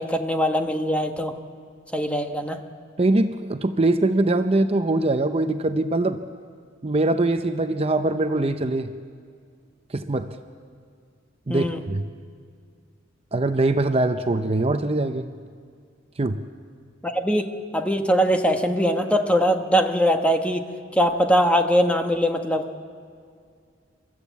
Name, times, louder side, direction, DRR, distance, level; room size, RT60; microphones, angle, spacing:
voice 1, 0.0-1.3 1.9-2.6 11.5-11.8 17.0-20.7 20.9-22.7, equal, 5° left, 5 dB, 1.2 m, -22 dB
voice 2, 3.0-6.2 6.8-8.9 9.9-10.3 11.5-12.1 13.3-15.3 16.2-16.4, right 2 dB, 30° right, 8 dB, 0.6 m, -22 dB
29.0 x 13.5 x 8.2 m, 2.2 s
head